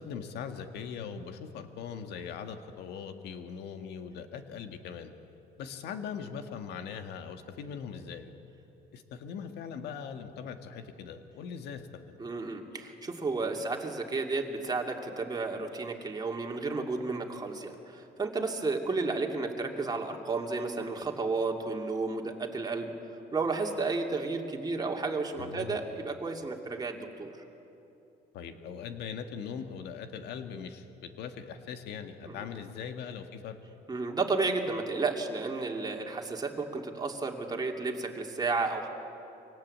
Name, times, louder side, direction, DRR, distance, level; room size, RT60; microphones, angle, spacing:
voice 1, 0.0-5.1 5.6-8.3 8.9-12.2 25.3-25.8 28.3-33.6, left 7 dB, 80° left, 7 dB, 1.7 m, -40 dB
voice 2, 12.2-22.9 23.3-27.3 32.2-32.5 33.9-38.9, right 3 dB, 25° right, 1 dB, 2.6 m, -32 dB
24.5 x 18.0 x 8.6 m, 2.9 s
cardioid pair, 110°, 17 cm